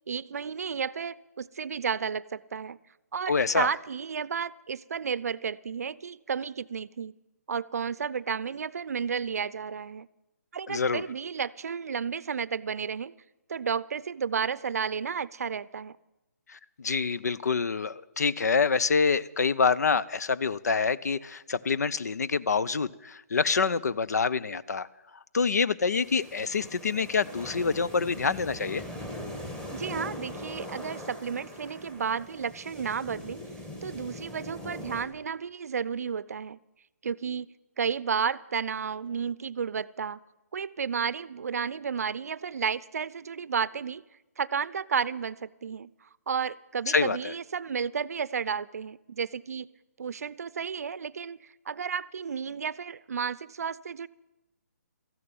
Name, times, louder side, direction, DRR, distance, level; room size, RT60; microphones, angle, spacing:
voice 1, 0.1-2.8 3.1-7.1 7.5-10.1 10.5-13.1 13.5-16.0 29.7-33.4 33.8-36.6 37.0-40.2 40.5-44.0 44.4-49.7 50.0-51.4 51.7-54.1, right 6 dB, 65° right, 19 dB, 0.6 m, -32 dB
voice 2, 3.3-3.7 10.7-11.0 16.5-24.9 25.3-28.8 46.9-47.3, left 5 dB, 70° left, 17 dB, 0.6 m, -26 dB
sound 1, 25.9-35.0, left 1 dB, 10° left, 1.7 m, -41 dB
14.0 x 11.0 x 8.9 m, 0.97 s
hypercardioid pair, 150°, 9 cm